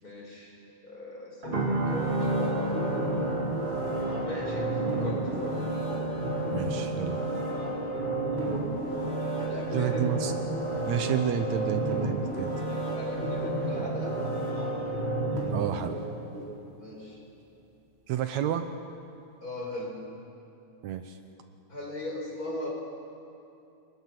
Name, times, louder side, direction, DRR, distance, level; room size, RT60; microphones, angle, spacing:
voice 1, 0.0-0.6 0.8-3.2 4.2-5.6 9.3-10.1 12.7-14.3 16.8-17.2 19.4-20.0 21.7-22.7, left 1 dB, 30° left, -1 dB, 4.9 m, -39 dB
sound 1, 1.4-16.5 16.9-17.0, right 2 dB, 40° right, 5.1 m, -31 dB
sound 2, 1.5-15.5 15.9-16.1, right 1 dB, 20° right, 1.9 m, -37 dB
voice 2, 6.5-7.2 9.7-10.3 10.9-12.6 15.5-16.0 18.1-18.7 20.8-21.2, right 10 dB, 75° right, 8 dB, 2.1 m, -30 dB
27.5 x 22.0 x 5.9 m, 2.7 s
omnidirectional pair, 3.4 m